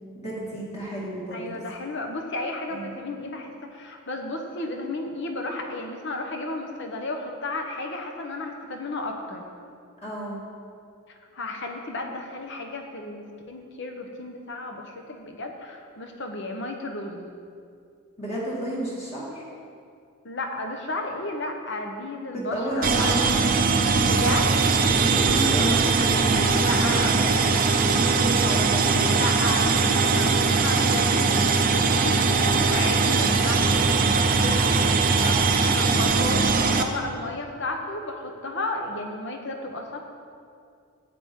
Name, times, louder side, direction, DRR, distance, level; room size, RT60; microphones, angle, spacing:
voice 1, 0.1-1.6 2.7-2.9 10.0-10.4 18.2-19.4 22.3-23.5 25.0-25.8 26.1-27.4 27.8-29.1, right 1 dB, 30° left, -6 dB, 2.0 m, -32 dB
voice 2, 1.3-9.5 11.3-17.3 20.2-23.2 24.0-24.7 26.6-27.1 29.1-40.0, left 2 dB, 60° left, 3 dB, 1.0 m, -33 dB
sound 1, 22.8-36.8, right 4 dB, 40° right, 0.6 m, -21 dB
10.5 x 8.5 x 3.8 m, 2.3 s
head